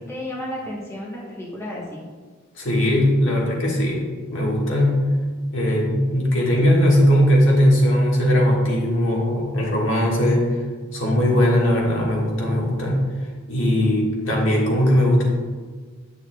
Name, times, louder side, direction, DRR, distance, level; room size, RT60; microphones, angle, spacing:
voice 1, 0.0-2.1, left 1 dB, 15° left, -4 dB, 1.0 m, -32 dB
voice 2, 2.5-5.1 5.5-10.6 10.9-13.1 13.5-15.2, equal, 70° left, -3 dB, 1.5 m, -19 dB
8.1 x 6.7 x 2.2 m, 1.5 s
head